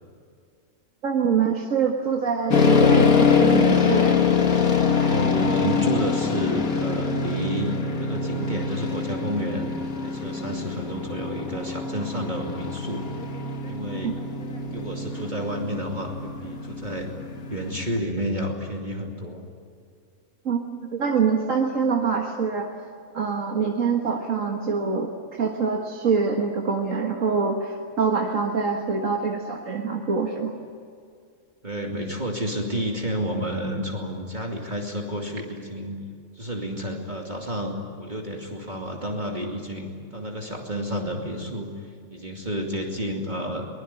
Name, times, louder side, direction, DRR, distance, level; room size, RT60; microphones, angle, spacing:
voice 1, 1.0-4.1 14.0-14.1 20.5-20.6 20.9-22.7 23.1-25.1 25.4-30.5, right 5 dB, 60° right, 1 dB, 2.0 m, -24 dB
sound 1, 2.5-18.0, left 5 dB, 75° left, 2.5 m, -24 dB
voice 2, 5.1-7.7 8.0-13.1 13.7-14.2 14.7-17.1 17.5-19.5 31.6-36.0 36.3-43.7, equal, 30° right, 0 dB, 2.6 m, -30 dB
23.5 x 21.5 x 9.7 m, 2.3 s
omnidirectional pair, 1.5 m